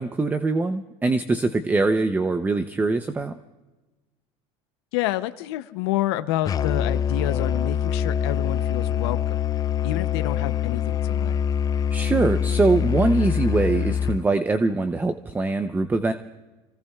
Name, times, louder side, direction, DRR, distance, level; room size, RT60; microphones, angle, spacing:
voice 1, 0.0-3.4 11.9-16.1, right 3 dB, 15° right, 9 dB, 0.6 m, -23 dB
voice 2, 4.9-9.4 9.8-11.4, left 14 dB, 90° left, 10 dB, 0.7 m, -28 dB
Musical instrument, 6.5-14.3, left 9 dB, 30° left, 0.4 m, -24 dB
29.0 x 17.5 x 2.4 m, 1.2 s
supercardioid pair, 120°, 13 cm